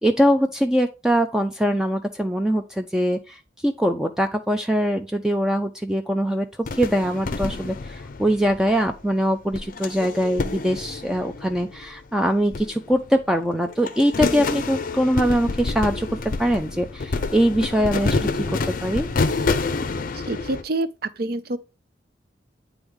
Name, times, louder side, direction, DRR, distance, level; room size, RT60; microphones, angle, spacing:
voice 1, 0.0-6.5 6.7-19.1, equal, 5° right, 0.4 m, -22 dB
sound 1, 6.6-9.0 9.5-12.0 12.5-13.4 13.7-20.6, left 3 dB, 50° left, 0.5 m, -28 dB
voice 2, 20.1-21.6, right 2 dB, 55° right, 0.6 m, -27 dB
9.3 x 3.5 x 3.7 m
head